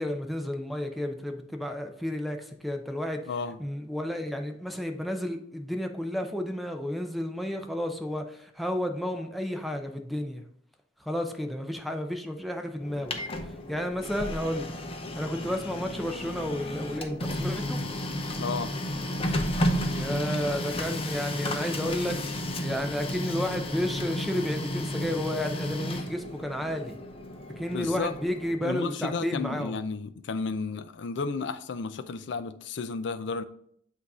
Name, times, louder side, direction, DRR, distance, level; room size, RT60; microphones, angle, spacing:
voice 1, 0.0-3.2 3.6-10.4 11.1-13.2 13.7-14.7 15.1-17.8 19.8-27.0 27.6-29.7, equal, ahead, 0.5 m, -32 dB
voice 2, 3.3-3.6 18.4-18.8 27.7-28.2 28.6-33.4, left 4 dB, 70° left, 0.5 m, -32 dB
Printer, 12.8-28.6, left 1 dB, 30° left, 0.7 m, -33 dB
8.1 x 2.7 x 4.8 m
head